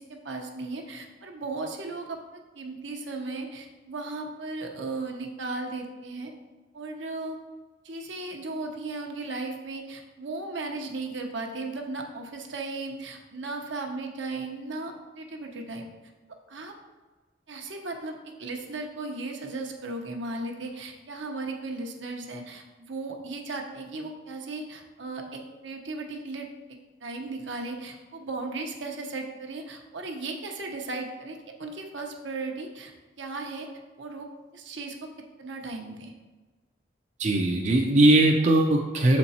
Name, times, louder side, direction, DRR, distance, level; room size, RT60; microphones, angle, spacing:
voice 1, 0.0-6.3 6.7-7.4 7.8-15.9 16.5-16.7 17.5-33.7 34.0-34.3 34.5-35.1 35.4-36.1, right 3 dB, 70° right, 3 dB, 0.9 m, -36 dB
voice 2, 37.2-39.2, right 1 dB, 40° right, 1 dB, 0.6 m, -20 dB
6.8 x 4.4 x 4.2 m, 1.3 s
head